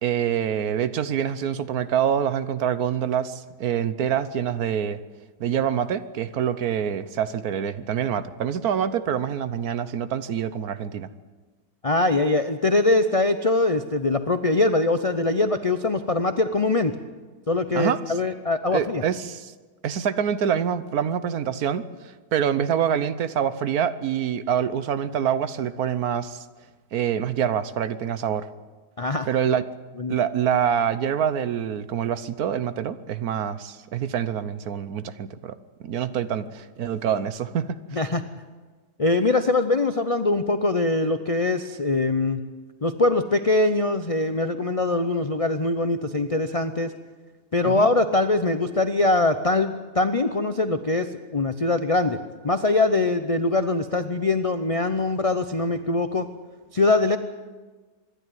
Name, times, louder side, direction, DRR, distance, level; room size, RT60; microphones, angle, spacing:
voice 1, 0.0-5.0 5.4-11.1 17.7-18.1 18.7-19.5 19.8-26.4 26.9-28.5 29.3-29.6 30.1-35.6 35.8-38.0 47.6-47.9, right 8 dB, 65° right, 13 dB, 1.3 m, -26 dB
voice 2, 11.8-16.9 17.5-19.0 29.0-29.3 30.0-30.1 37.9-38.2 39.0-42.4 42.8-46.9 47.5-52.2 52.4-56.3 56.7-57.2, left 2 dB, 50° left, 9 dB, 0.4 m, -22 dB
25.0 x 11.5 x 9.4 m, 1.3 s
omnidirectional pair, 1.8 m